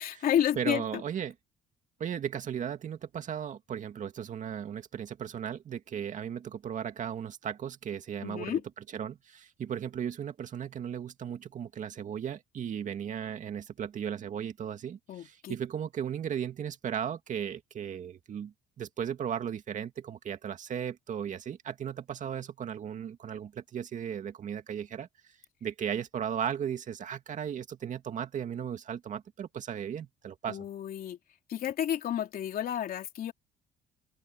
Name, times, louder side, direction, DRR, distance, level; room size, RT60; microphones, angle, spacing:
voice 1, 0.0-1.0 8.2-8.6 15.1-15.5 30.5-31.2 31.5-33.3, left 10 dB, 60° left, 3.4 m, -31 dB
voice 2, 0.6-1.3 2.0-8.6 8.9-25.1 25.6-30.7, right 8 dB, 50° right, 2.3 m, -36 dB
open air
cardioid pair, 110°, 17 cm